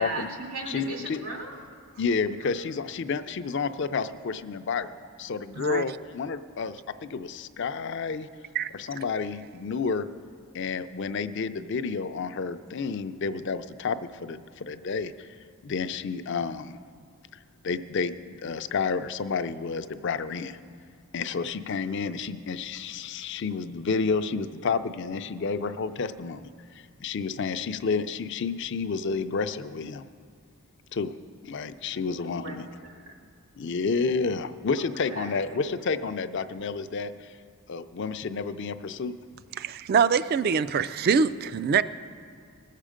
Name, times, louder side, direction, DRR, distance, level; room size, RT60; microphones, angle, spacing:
voice 1, 0.0-1.6 2.4-2.5 31.9-33.3 34.8-35.6, right 2 dB, 85° right, 1 dB, 2.1 m, -38 dB
voice 2, 0.7-1.2 2.0-4.9 5.2-8.3 8.7-10.1 10.5-15.3 15.6-16.8 17.6-20.6 21.1-30.0 30.9-31.2 31.4-32.7 33.5-37.4 37.7-39.1, left 5 dB, 55° left, 11 dB, 0.5 m, -30 dB
voice 3, 39.6-41.8, right 6 dB, 45° right, 14 dB, 0.3 m, -24 dB
20.0 x 7.4 x 5.1 m, 2.1 s
head